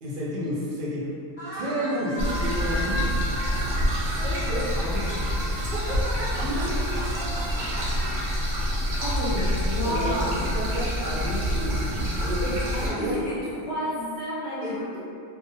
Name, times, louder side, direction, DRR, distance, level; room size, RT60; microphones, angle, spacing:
voice 1, 0.0-1.1 1.5-3.0 4.2-5.3 5.5-7.9 8.9-9.1 9.8-11.8 12.2-13.2 14.6-15.0, equal, 65° right, -7 dB, 0.5 m, -32 dB
sound 1, 1.0-1.1 1.4-6.2 6.9-8.2, equal, 5° right, 0.7 m, -36 dB
sound 2, 2.2-12.9, equal, 90° right, 1.1 m, -27 dB
voice 2, 6.4-7.1 9.0-10.4 12.7-12.9 13.2-13.3 13.6-15.0, equal, 65° left, -7 dB, 0.8 m, -30 dB
2.4 x 2.0 x 2.6 m, 2.6 s
omnidirectional pair, 1.4 m